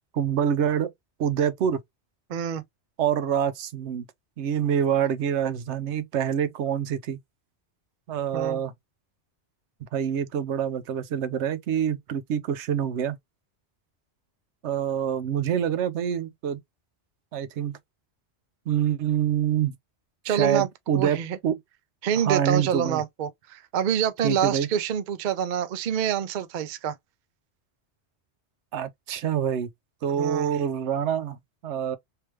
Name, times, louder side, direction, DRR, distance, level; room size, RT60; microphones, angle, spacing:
voice 1, 0.1-0.9 1.2-1.8 3.0-4.1 4.4-7.2 8.1-8.7 9.9-13.2 14.6-16.6 17.3-17.8 18.7-19.7 20.3-21.6 22.2-23.0 24.2-24.7 28.7-29.7 30.0-31.4 31.6-32.0, right 9 dB, 80° right, 0.9 m, -26 dB
voice 2, 2.3-2.6 8.3-8.6 20.2-20.7 20.9-21.4 22.0-26.9 30.2-30.5, right 9 dB, 55° right, 0.6 m, -26 dB
3.3 x 2.8 x 3.0 m
omnidirectional pair, 1.2 m